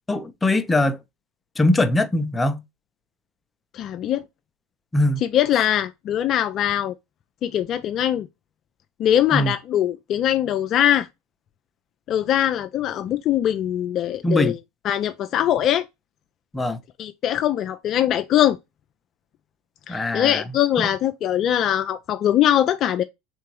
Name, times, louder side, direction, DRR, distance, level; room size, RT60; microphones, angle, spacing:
voice 1, 0.1-1.0 1.6-2.6 4.9-5.2 9.3-9.5 14.2-14.5 16.5-16.8 19.9-20.4 20.8-20.9, left 1 dB, 15° left, 0.7 m, -21 dB
voice 2, 3.7-4.2 5.2-6.9 7.4-8.3 9.0-11.1 12.1-14.6 14.8-15.8 17.0-18.6 19.9-23.0, left 11 dB, 45° left, 0.4 m, -22 dB
3.7 x 3.5 x 3.0 m
hypercardioid pair, 85°, 0 cm